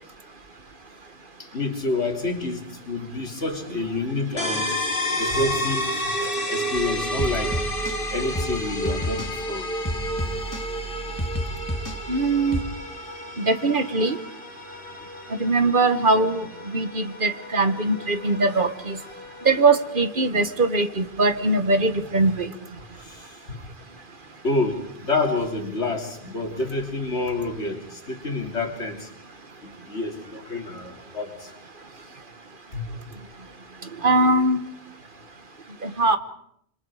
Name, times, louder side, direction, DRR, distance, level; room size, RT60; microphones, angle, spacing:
voice 1, 1.4-4.7 5.2-5.9 6.2-7.6 8.1-9.7 23.0-23.4 24.4-29.1 29.6-31.5 32.7-33.0, left 2 dB, 80° left, 2 dB, 3.6 m, -28 dB
sound 1, 4.4-19.9, left 1 dB, 50° left, 2.6 m, -31 dB
sound 2, 6.8-12.6, right 1 dB, 15° left, 2.4 m, -32 dB
voice 2, 12.1-12.6 13.4-14.2 15.4-19.0 19.4-22.5 34.0-34.6 35.8-36.2, right 2 dB, 50° right, 10 dB, 1.5 m, -21 dB
26.5 x 26.0 x 4.9 m, 0.70 s
omnidirectional pair, 1.1 m